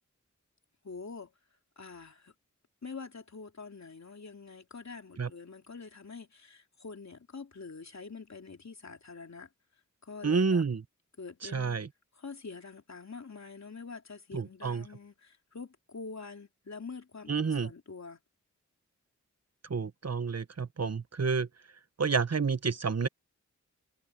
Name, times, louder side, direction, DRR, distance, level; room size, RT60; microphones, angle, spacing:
voice 1, 0.8-1.3 1.8-2.3 2.8-9.5 10.0-10.6 11.2-11.8 12.2-18.2, left 4 dB, 60° left, 3.3 m, -45 dB
voice 2, 10.2-10.8 11.4-11.9 14.3-14.9 17.3-17.7 19.7-21.5 22.0-23.1, right 5 dB, 55° right, 1.3 m, -29 dB
cardioid pair, 45°, 31 cm